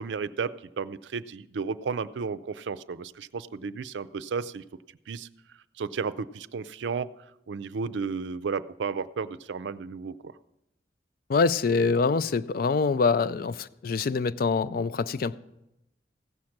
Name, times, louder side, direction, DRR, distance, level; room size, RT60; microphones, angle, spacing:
voice 1, 0.0-4.6 5.1-5.3 5.8-7.1 7.5-10.3, right 5 dB, 85° right, 0.4 m, -33 dB
voice 2, 11.3-15.4, left 4 dB, 50° left, 0.4 m, -25 dB
16.0 x 6.4 x 5.9 m
head